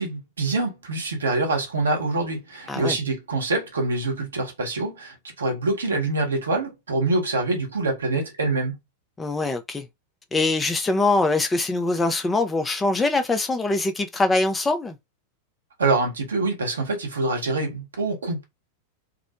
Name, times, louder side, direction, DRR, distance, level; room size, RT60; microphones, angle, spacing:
voice 1, 0.0-8.7 15.8-18.4, right 2 dB, 70° right, 0.8 m, -25 dB
voice 2, 9.2-9.9 10.3-15.0, left 2 dB, 15° left, 0.4 m, -23 dB
2.4 x 2.0 x 2.8 m
figure-of-eight pair, 90°, 0 cm